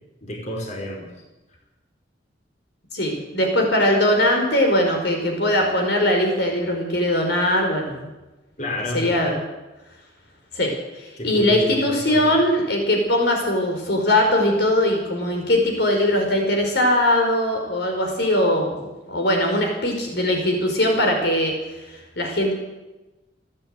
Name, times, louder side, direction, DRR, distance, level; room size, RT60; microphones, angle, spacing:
voice 1, 0.2-1.1 8.6-9.2 11.2-12.3, left 1 dB, 40° left, 0 dB, 5.1 m, -30 dB
voice 2, 2.9-8.1 8.9-9.4 10.5-21.5 22.2-22.5, left 1 dB, 65° left, 2 dB, 5.1 m, -20 dB
30.0 x 10.5 x 9.1 m, 1.1 s
head